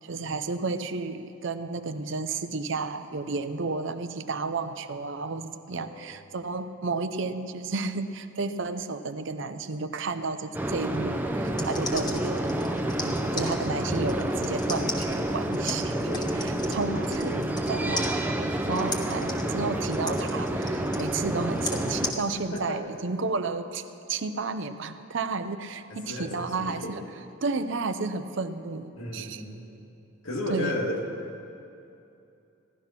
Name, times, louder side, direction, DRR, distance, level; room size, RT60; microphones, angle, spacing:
voice 1, 0.0-12.6 13.0-15.9 16.3-27.0 27.4-29.4 30.5-30.8, right 4 dB, 60° right, 10 dB, 0.6 m, -32 dB
voice 2, 5.7-6.1 15.9-16.4 22.3-22.9 25.9-26.9 28.9-29.6 30.2-31.0, left 1 dB, 85° left, -1 dB, 2.3 m, -34 dB
sound 1, 10.5-22.1, right 1 dB, 10° right, 0.7 m, -29 dB
sound 2, 11.4-17.7 18.0-22.2, left 3 dB, 20° left, 1.1 m, -36 dB
15.5 x 11.5 x 5.8 m, 2.7 s
head